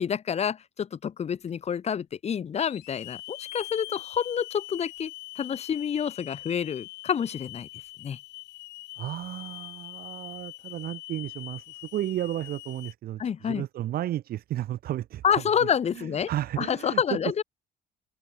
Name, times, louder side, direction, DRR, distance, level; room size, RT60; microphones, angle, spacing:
voice 1, 0.0-5.1 5.4-7.7 8.0-8.2 13.2-13.7 15.2-16.3 16.6-17.4, left 8 dB, 40° left, 1.6 m, -28 dB
Hiss / Alarm, 1.5-1.6 2.6-12.9, left 19 dB, 90° left, 3.6 m, -43 dB
voice 2, 9.0-15.7 15.9-17.4, right 13 dB, 65° right, 1.4 m, -33 dB
open air
cardioid pair, 110°, 17 cm